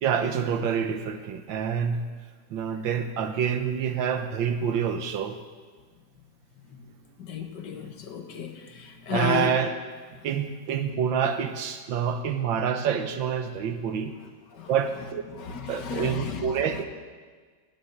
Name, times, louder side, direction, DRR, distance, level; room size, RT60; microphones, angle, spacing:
voice 1, 0.0-2.0 2.5-5.4 9.1-9.7 10.2-14.1 14.7-15.2 15.7-16.8, right 7 dB, 90° right, 8 dB, 1.8 m, -27 dB
voice 2, 7.2-9.5 14.6-14.7 15.4-16.5, left 6 dB, 65° left, 5 dB, 1.9 m, -33 dB
18.0 x 7.1 x 7.9 m, 1.5 s
omnidirectional pair, 2.0 m